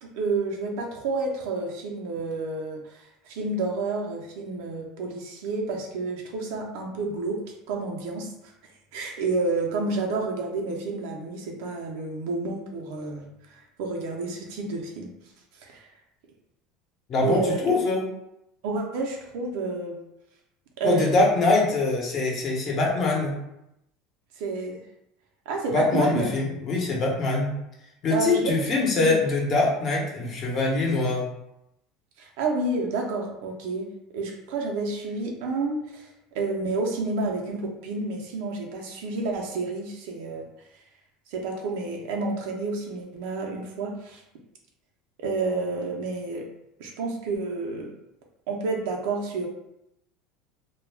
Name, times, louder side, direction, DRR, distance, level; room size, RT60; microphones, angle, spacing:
voice 1, 0.0-8.5 8.9-15.1 15.6-15.8 17.2-17.6 18.6-20.0 20.8-21.1 24.4-24.8 25.5-26.3 28.1-28.5 28.8-29.2 32.2-33.9 34.1-36.1 36.3-40.4 41.3-44.2 45.2-46.4 46.8-47.9 48.5-49.5, right 3 dB, 75° right, 0 dB, 0.6 m, -30 dB
voice 2, 17.1-18.0 20.8-23.3 25.7-27.6 28.0-31.2, left 3 dB, 45° left, -2 dB, 0.9 m, -23 dB
2.2 x 2.2 x 3.3 m, 0.84 s
supercardioid pair, 110°, 0 cm